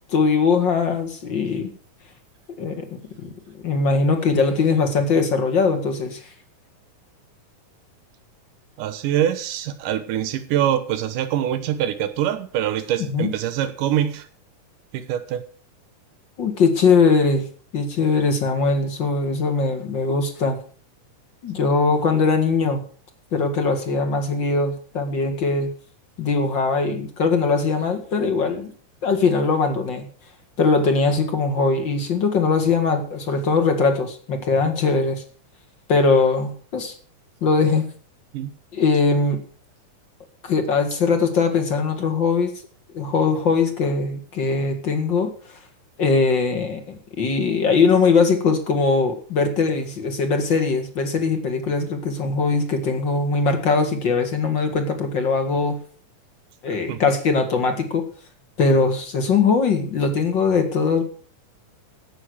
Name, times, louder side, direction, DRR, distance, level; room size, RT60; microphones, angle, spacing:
voice 1, 0.1-1.7 2.6-2.9 3.2-3.3 3.6-6.2 13.0-13.3 16.4-17.5 17.7-20.6 21.4-22.8 23.3-25.7 26.2-28.7 29.0-30.1 30.6-35.2 35.9-36.9 37.4-37.9 38.7-39.4 40.4-42.5 42.9-45.3 46.0-55.8 56.6-58.0 58.6-61.0, left 4 dB, 40° left, 2.3 m, -21 dB
voice 2, 8.8-14.3 14.9-15.4 38.3-38.5 56.9-57.0, right 11 dB, 90° right, 2.7 m, -24 dB
16.0 x 6.6 x 6.4 m
omnidirectional pair, 3.6 m